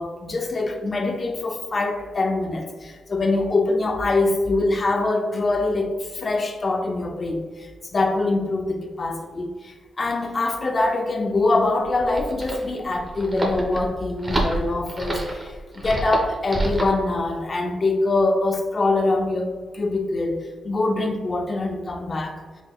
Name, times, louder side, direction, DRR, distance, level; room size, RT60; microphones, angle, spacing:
voice 1, 0.0-22.4, left 2 dB, 45° left, 4 dB, 0.5 m, -24 dB
sound 1, 11.8-17.0, right 1 dB, 25° right, 0.9 m, -28 dB
4.1 x 3.3 x 2.3 m, 1.5 s
cardioid pair, 55°, 0 cm